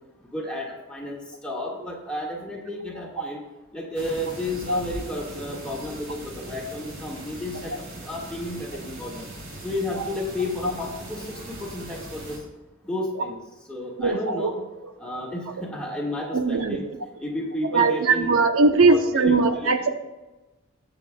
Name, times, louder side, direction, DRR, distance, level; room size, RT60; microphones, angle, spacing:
voice 1, 0.3-3.4 3.7-9.2 9.6-12.3 12.8-13.4 13.7-14.6 15.0-16.8 17.2-18.3 18.9-19.3 19.6-19.9, left 1 dB, 5° left, -3 dB, 1.6 m, -32 dB
sound 1, 3.9-12.4, right 1 dB, 60° right, 3.0 m, -39 dB
voice 2, 14.0-14.5 16.3-16.8 17.7-19.9, right 3 dB, 85° right, 7 dB, 0.8 m, -20 dB
19.5 x 7.0 x 2.3 m, 1.1 s
head